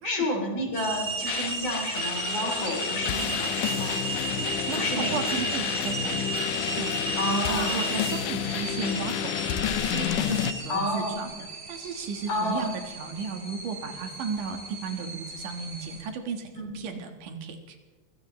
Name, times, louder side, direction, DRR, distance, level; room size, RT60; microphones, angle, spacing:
voice 1, 0.0-4.0 4.7-5.2 7.2-7.8 10.7-11.2 12.3-12.7 16.6-16.7, left 1 dB, 55° left, 1 dB, 4.2 m, -30 dB
sound 1, 0.7-16.1, right 4 dB, 25° right, 1.8 m, -35 dB
sound 2, 1.3-10.5, left 11 dB, 90° left, 2.3 m, -30 dB
voice 2, 4.4-6.3 6.8-7.0 7.5-17.8, right 5 dB, 85° right, 5 dB, 3.1 m, -35 dB
24.0 x 16.5 x 3.2 m, 1.3 s
omnidirectional pair, 3.5 m